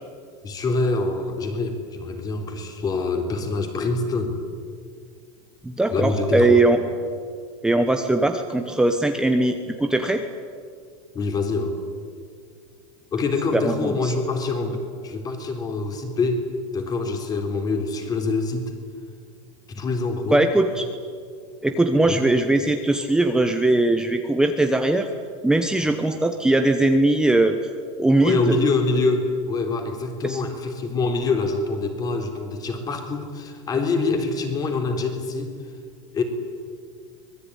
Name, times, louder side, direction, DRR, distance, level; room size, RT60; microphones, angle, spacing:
voice 1, 0.4-4.4 5.9-6.6 11.1-11.7 13.1-16.5 16.7-18.7 19.7-20.4 22.0-22.3 28.2-35.5 36.1-36.2, left 3 dB, 20° left, 5 dB, 3.6 m, -25 dB
voice 2, 5.6-6.8 7.6-10.2 13.5-14.1 20.3-20.9 21.6-25.1 25.4-27.6 28.0-28.6 30.2-30.4, right 2 dB, 5° right, 5 dB, 1.0 m, -20 dB
25.5 x 20.5 x 9.8 m, 2.1 s
supercardioid pair, 160°, 17 cm